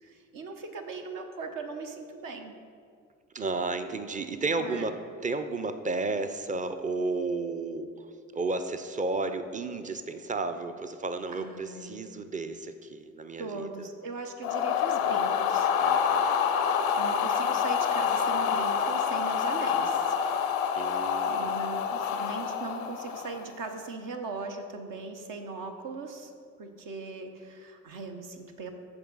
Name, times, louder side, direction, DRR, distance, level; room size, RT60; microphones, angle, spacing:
voice 1, 0.0-2.6 4.6-4.9 11.3-12.0 13.4-15.7 16.7-20.2 21.3-26.3 26.6-28.7, right 3 dB, 55° right, 5 dB, 1.1 m, -39 dB
voice 2, 3.3-8.1 8.3-13.7 15.8-16.4 20.8-21.5, right 3 dB, 20° right, 9 dB, 0.7 m, -33 dB
sound 1, 14.4-23.5, left 7 dB, 80° left, 0.6 m, -27 dB
14.0 x 4.8 x 4.0 m, 2.2 s
hypercardioid pair, 50°, 39 cm